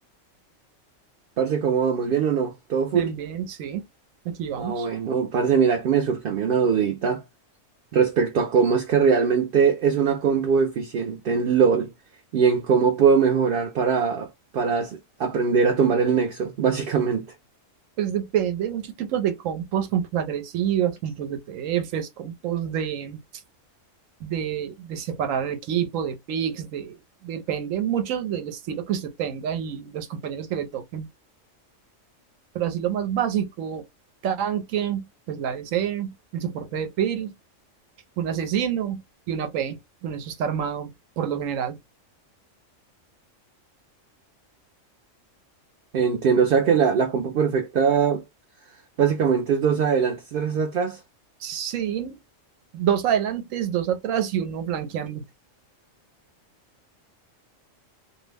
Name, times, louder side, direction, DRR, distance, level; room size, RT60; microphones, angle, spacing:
voice 1, 1.4-3.1 4.6-7.2 7.9-11.9 12.3-14.3 14.5-17.3 45.9-48.2 49.0-51.0, right 6 dB, 65° right, 0.6 m, -21 dB
voice 2, 2.9-3.8 4.2-4.9 18.0-23.2 24.2-31.1 32.5-33.8 34.2-37.3 38.2-39.0 39.3-41.8 51.4-52.2 52.7-55.3, right 9 dB, 85° right, 1.0 m, -27 dB
2.5 x 2.0 x 3.3 m
omnidirectional pair, 1.3 m